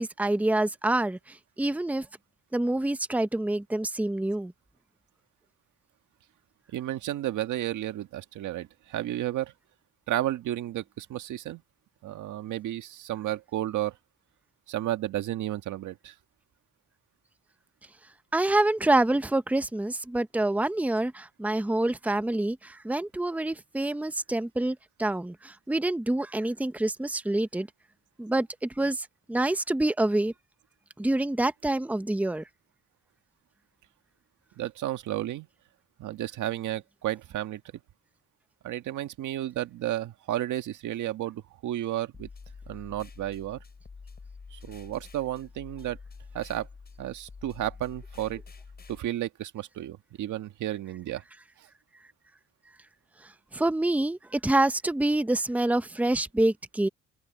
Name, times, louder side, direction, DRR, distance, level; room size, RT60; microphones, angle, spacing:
voice 1, 0.0-2.1 2.5-4.5 18.3-27.7 28.2-30.3 31.0-32.4 53.2-56.9, right 2 dB, 5° right, 0.9 m, -27 dB
voice 2, 6.7-9.5 10.1-11.6 12.0-14.0 14.7-16.1 34.6-35.5 36.0-37.6 38.6-42.3 42.7-43.6 44.5-46.0 46.3-46.7 47.0-48.4 48.9-51.2 51.6-51.7, right 13 dB, 80° right, 1.7 m, -32 dB
sound 1, 42.1-49.0, left 4 dB, 30° left, 6.9 m, -47 dB
cardioid pair, 90°, 30 cm